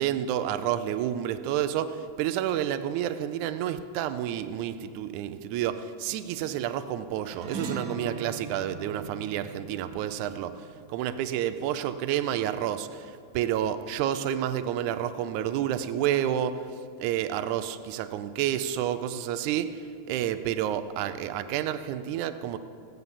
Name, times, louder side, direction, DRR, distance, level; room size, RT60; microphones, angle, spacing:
voice 1, 0.0-16.7 17.0-19.8 20.1-22.6, right 11 dB, 80° right, 10 dB, 1.7 m, -30 dB
sound 1, 7.3-12.0, right 4 dB, 65° right, 1.3 m, -40 dB
14.5 x 9.7 x 7.1 m, 2.5 s
omnidirectional pair, 4.0 m